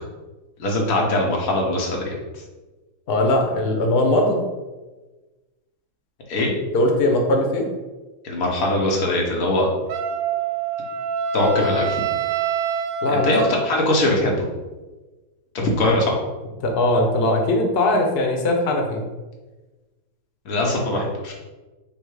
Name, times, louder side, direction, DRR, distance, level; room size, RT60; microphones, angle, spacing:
voice 1, 0.6-2.4 6.3-6.5 8.2-9.7 11.3-12.0 13.1-14.5 15.5-16.1 20.4-21.3, left 1 dB, 55° left, -1 dB, 1.2 m, -21 dB
voice 2, 3.1-4.4 6.7-7.7 13.0-13.3 15.6-15.7 16.6-19.1, left 1 dB, 90° left, 2 dB, 0.5 m, -20 dB
Wind instrument woodwind instrument, 9.9-13.9, right 5 dB, 80° right, 1.3 m, -25 dB
5.6 x 2.0 x 4.7 m, 1.2 s
omnidirectional pair, 2.0 m